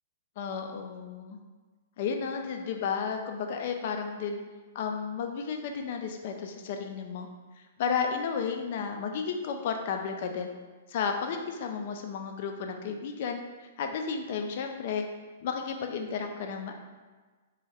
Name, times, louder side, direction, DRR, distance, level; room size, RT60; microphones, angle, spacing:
voice 1, 0.4-1.4 2.0-4.4 4.7-7.3 7.8-10.5 10.9-13.4 13.8-15.1 15.4-16.7, left 6 dB, 55° left, 4 dB, 0.3 m, -32 dB
2.5 x 2.2 x 3.3 m, 1.3 s
hypercardioid pair, 115°, 0 cm